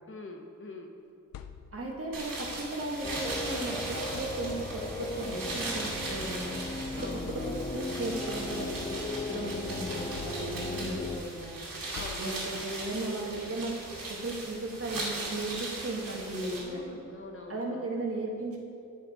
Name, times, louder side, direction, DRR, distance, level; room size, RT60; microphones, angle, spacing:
voice 1, 0.1-0.9 7.0-7.6 10.7-11.1 11.9-12.5 16.6-17.9, left 2 dB, 40° left, 2 dB, 1.0 m, -45 dB
sound 1, 1.0-2.1 3.4-3.5 4.0-4.9 6.0-6.2 6.7-6.8 7.2-8.0 8.5-9.6 10.1-11.0 11.9-12.8, left 8 dB, 90° left, 0.5 m, -48 dB
voice 2, 1.7-6.6 7.0-9.0 9.3-11.6 12.2-16.9 17.5-18.6, right 2 dB, 45° right, -1 dB, 1.6 m, -36 dB
sound 2, 2.1-16.6, right 2 dB, 85° right, 2.3 m, -39 dB
sound 3, 3.0-11.2, left 2 dB, 15° left, 0.4 m, -37 dB
9.1 x 7.3 x 4.8 m, 2.6 s
wide cardioid pair, 90°, 33 cm